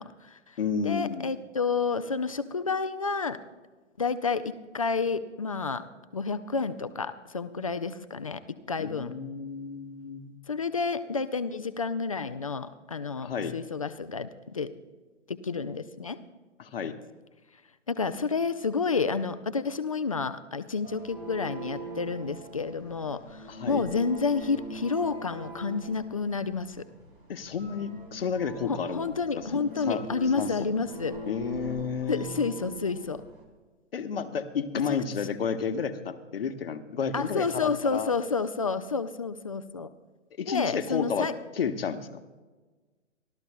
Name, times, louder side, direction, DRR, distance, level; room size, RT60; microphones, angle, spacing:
voice 1, 0.0-0.4 0.8-3.4 4.0-5.9 6.1-9.1 10.5-14.7 15.3-16.2 17.9-26.8 28.7-31.2 32.1-33.2 34.7-35.0 37.1-39.9 40.5-41.3, left 4 dB, 30° left, 11 dB, 0.4 m, -30 dB
voice 2, 0.6-1.3 8.8-10.4 13.2-13.5 16.6-17.0 23.5-23.8 27.3-30.0 30.4-30.5 31.3-32.3 33.9-38.1 40.4-41.3 41.5-42.1, left 6 dB, 50° left, 8 dB, 1.1 m, -31 dB
sound 1, 20.8-33.4, right 1 dB, 45° right, 3.5 m, -42 dB
28.5 x 13.0 x 2.2 m, 1.3 s
figure-of-eight pair, 125°, 38 cm